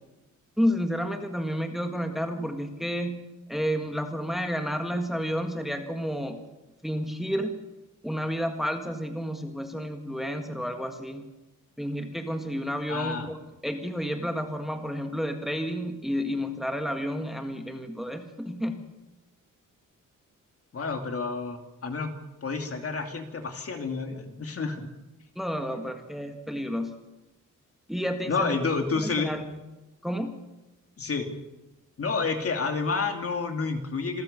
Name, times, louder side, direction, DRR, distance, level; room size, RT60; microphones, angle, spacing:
voice 1, 0.6-3.2 3.5-6.4 6.8-7.5 8.0-11.2 11.8-18.8 25.3-26.9 27.9-28.6 29.0-29.4 30.0-30.3, equal, ahead, 5 dB, 1.7 m, -30 dB
voice 2, 12.9-13.3 20.7-22.1 22.4-24.9 28.3-29.3 31.0-31.3 32.0-34.2, left 4 dB, 45° left, 5 dB, 2.7 m, -29 dB
26.5 x 14.0 x 6.9 m, 1.0 s
wide cardioid pair, 135°, 32 cm